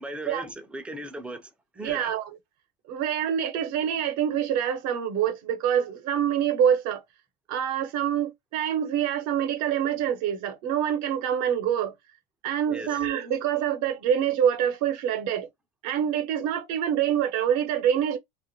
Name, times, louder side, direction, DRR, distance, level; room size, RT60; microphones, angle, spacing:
voice 1, 0.0-2.1 12.7-13.0, right 1 dB, 5° right, 0.4 m, -38 dB
voice 2, 1.8-2.3 2.9-7.0 7.5-11.9 12.4-15.5 15.8-18.2, right 9 dB, 60° right, 0.8 m, -26 dB
2.5 x 2.4 x 2.7 m
supercardioid pair, 115°, 31 cm